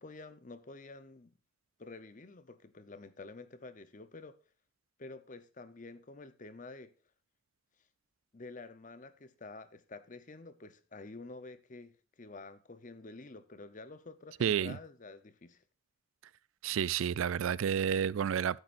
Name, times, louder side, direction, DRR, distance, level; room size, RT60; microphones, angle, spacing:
voice 1, 0.0-1.4 1.8-4.4 5.0-6.9 8.3-15.6, left 3 dB, 40° left, 0.7 m, -49 dB
voice 2, 14.4-14.8 16.6-18.6, right 8 dB, 70° right, 0.3 m, -30 dB
13.5 x 8.0 x 2.6 m
head